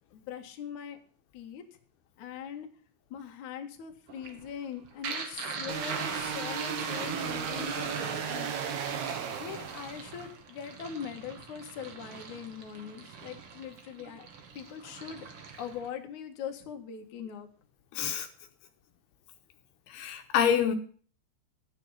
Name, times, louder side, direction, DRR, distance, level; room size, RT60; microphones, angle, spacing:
voice 1, 0.1-1.0 1.3-1.6 2.2-2.7 3.1-8.5 9.4-14.2 14.5-15.3 15.6-17.5, left 8 dB, 55° left, 4 dB, 2.8 m, -41 dB
sound 1, 4.1-15.9, right 5 dB, 45° right, 2.1 m, -42 dB
sound 2, 5.7-10.2, right 7 dB, 85° right, 3.7 m, -35 dB
voice 2, 17.9-18.3 19.9-20.8, left 8 dB, 80° left, 5 dB, 3.0 m, -27 dB
13.0 x 9.7 x 5.6 m, 0.44 s
omnidirectional pair, 4.5 m